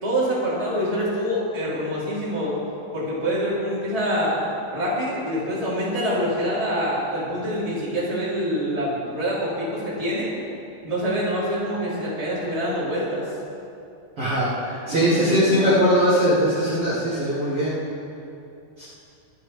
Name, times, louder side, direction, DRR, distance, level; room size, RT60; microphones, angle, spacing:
voice 1, 0.0-2.6 2.9-4.4 4.7-10.3 10.8-13.2 14.9-15.7, equal, 10° right, -9 dB, 3.5 m, -25 dB
voice 2, 14.2-17.8 18.8-18.9, equal, 35° right, -10 dB, 3.4 m, -20 dB
25.5 x 9.6 x 3.7 m, 2.6 s
omnidirectional pair, 5.0 m